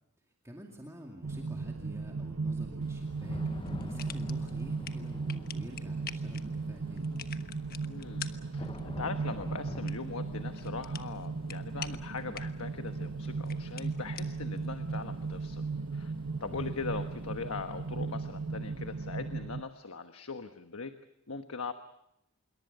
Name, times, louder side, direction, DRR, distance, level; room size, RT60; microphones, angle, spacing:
voice 1, 0.4-7.1 16.5-16.7, equal, 15° right, 0 dB, 2.4 m, -47 dB
sound 1, 1.2-19.6, right 4 dB, 65° right, 0.8 m, -37 dB
Thunder / Rain, 2.8-18.6, left 1 dB, 25° left, 0.9 m, -49 dB
sound 2, 3.6-15.5, left 8 dB, 45° left, 1.2 m, -49 dB
voice 2, 7.8-8.3 8.5-15.6 15.9-16.1 16.4-20.9 21.3-21.7, left 4 dB, 70° left, 7 dB, 1.3 m, -40 dB
27.0 x 22.5 x 6.9 m, 0.81 s
head